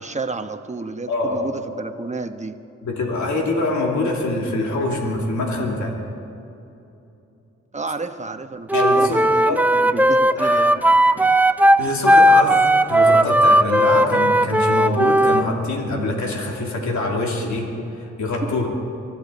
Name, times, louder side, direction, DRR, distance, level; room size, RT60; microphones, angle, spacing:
voice 1, 0.0-2.6 5.8-5.9 7.7-10.8 11.2-11.3 18.4-18.5, right 3 dB, 25° right, 7 dB, 1.1 m, -31 dB
voice 2, 1.1-1.4 2.8-6.0 8.7-9.6 10.4-10.7 11.8-12.6 12.9-17.7 18.0-18.7, left 2 dB, 75° left, -1 dB, 2.9 m, -24 dB
Wind instrument woodwind instrument, 8.7-15.5, right 1 dB, 5° right, 0.5 m, -16 dB
24.0 x 13.0 x 4.1 m, 2.8 s
cardioid pair, 70°, 29 cm